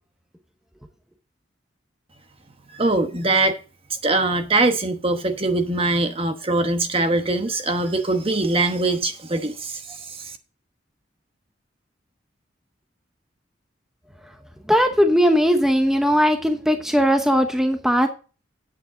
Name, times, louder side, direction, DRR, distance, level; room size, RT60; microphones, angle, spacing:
voice 1, 2.7-3.6 4.0-10.4, right 2 dB, 30° right, 1.1 m, -22 dB
voice 2, 14.7-18.1, equal, 5° right, 0.9 m, -19 dB
9.7 x 8.1 x 3.8 m
head